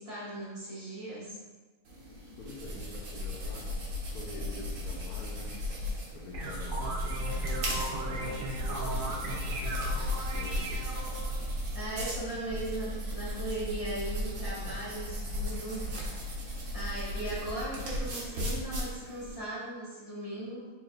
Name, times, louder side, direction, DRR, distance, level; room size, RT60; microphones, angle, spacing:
voice 1, 0.0-1.4 11.7-16.3 16.7-20.7, right 1 dB, 25° left, -12 dB, 1.2 m, -38 dB
sound 1, 1.9-19.3, equal, 55° right, 1.2 m, -35 dB
voice 2, 2.4-3.8 4.1-5.6 6.1-10.8 11.2-11.3, left 3 dB, 70° left, 0 dB, 1.2 m, -46 dB
sound 2, 6.1-11.3, right 2 dB, 90° right, 0.4 m, -38 dB
4.4 x 4.1 x 2.4 m, 1.3 s
omnidirectional pair, 1.7 m